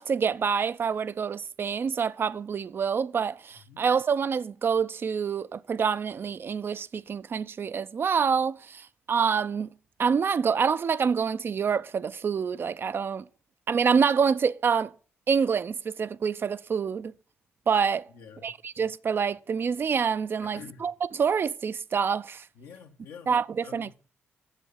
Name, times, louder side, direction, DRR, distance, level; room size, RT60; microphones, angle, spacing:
voice 1, 0.0-9.7 10.0-13.3 13.7-14.9 15.3-17.1 17.7-18.1 18.4-22.5 23.3-24.1, right 6 dB, 50° right, 0.4 m, -27 dB
voice 2, 18.1-18.5 20.4-20.9 22.5-23.3 23.6-23.9, left 6 dB, 85° left, 1.2 m, -47 dB
7.3 x 7.1 x 5.4 m
supercardioid pair, 60°, 5 cm